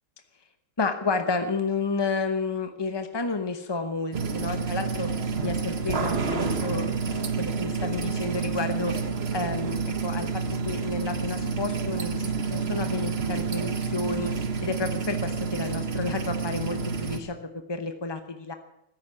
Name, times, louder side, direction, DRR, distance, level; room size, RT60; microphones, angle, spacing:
voice 1, 0.8-5.1 5.4-8.9 9.3-14.3 14.6-18.5, left 4 dB, 25° left, 8 dB, 0.5 m, -31 dB
sound 1, 4.1-17.2, right 5 dB, 40° right, 1.3 m, -29 dB
14.0 x 10.0 x 9.9 m, 0.80 s
omnidirectional pair, 2.0 m